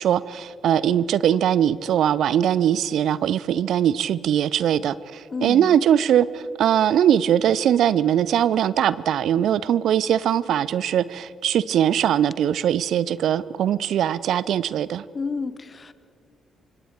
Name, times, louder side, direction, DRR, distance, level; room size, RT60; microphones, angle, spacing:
voice 1, 0.0-15.0, right 10 dB, 65° right, 19 dB, 0.5 m, -21 dB
voice 2, 5.3-5.8 15.1-15.9, left 4 dB, 40° left, 15 dB, 1.1 m, -30 dB
25.5 x 23.0 x 4.7 m, 2.5 s
hypercardioid pair, 40°, 0 cm